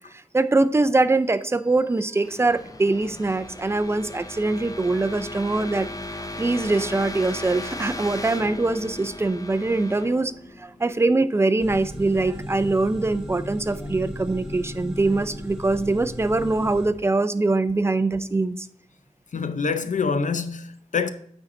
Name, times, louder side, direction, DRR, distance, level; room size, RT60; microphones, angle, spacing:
voice 1, 0.3-5.9 6.4-10.3 10.6-18.7, right 2 dB, 20° right, 0.4 m, -23 dB
sound 1, 1.6-11.3, left 2 dB, 25° left, 0.6 m, -37 dB
sound 2, 11.6-16.9, equal, 5° right, 1.8 m, -36 dB
voice 2, 19.3-21.1, left 5 dB, 70° left, 0.6 m, -26 dB
8.5 x 4.5 x 3.8 m
wide cardioid pair, 85°, 13 cm